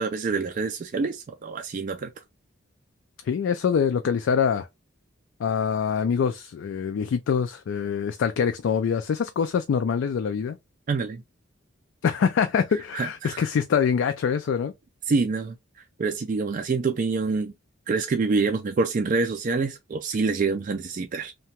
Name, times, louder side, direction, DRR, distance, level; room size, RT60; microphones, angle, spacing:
voice 1, 0.0-2.1 10.9-11.2 12.9-13.4 15.1-15.6 16.0-17.5 17.9-21.3, right 4 dB, 40° right, 0.3 m, -26 dB
voice 2, 3.2-4.7 5.4-10.6 12.0-14.7, left 6 dB, 65° left, 0.3 m, -24 dB
2.8 x 2.2 x 2.8 m
head